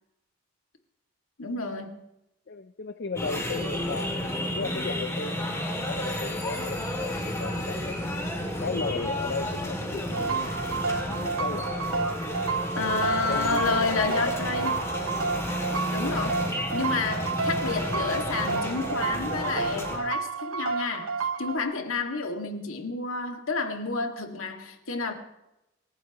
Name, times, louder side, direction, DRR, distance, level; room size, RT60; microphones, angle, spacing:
voice 1, 1.4-2.0 12.8-14.7 15.7-25.1, left 4 dB, 75° left, 2.2 m, -30 dB
voice 2, 2.5-8.1 8.6-10.5 11.1-11.7 12.9-14.7 16.4-16.7, left 4 dB, 50° left, 0.6 m, -36 dB
sound 1, 3.2-20.0, left 1 dB, 15° left, 2.6 m, -32 dB
sound 2, 10.1-21.6, right 4 dB, 70° right, 0.9 m, -30 dB
27.5 x 15.0 x 3.1 m
head